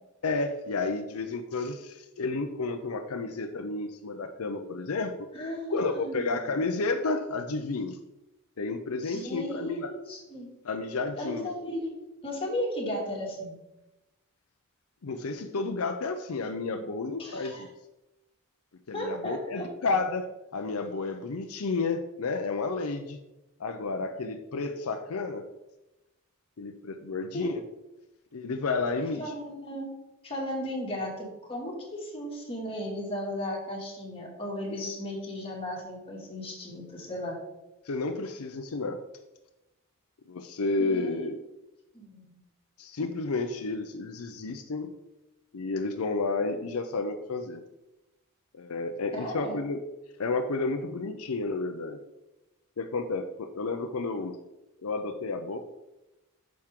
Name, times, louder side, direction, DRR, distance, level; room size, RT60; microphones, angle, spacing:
voice 1, 0.2-5.3 5.7-8.0 8.6-9.9 10.6-11.5 15.0-17.7 18.9-23.2 23.6-25.4 26.6-27.6 28.3-29.3 37.9-39.0 40.3-41.4 42.8-44.9 45.5-47.6 48.5-49.8 50.2-52.0 52.8-54.4 54.8-55.6, left 3 dB, 80° left, 7 dB, 0.6 m, -31 dB
voice 2, 5.3-6.6 9.0-10.5 11.2-11.9 12.2-13.5 17.2-17.6 18.9-19.7 27.3-27.6 29.2-29.9 30.2-37.4 40.8-41.3 41.9-42.3 49.1-49.6, left 1 dB, 25° left, -2 dB, 2.2 m, -35 dB
8.9 x 6.3 x 3.7 m, 0.98 s
head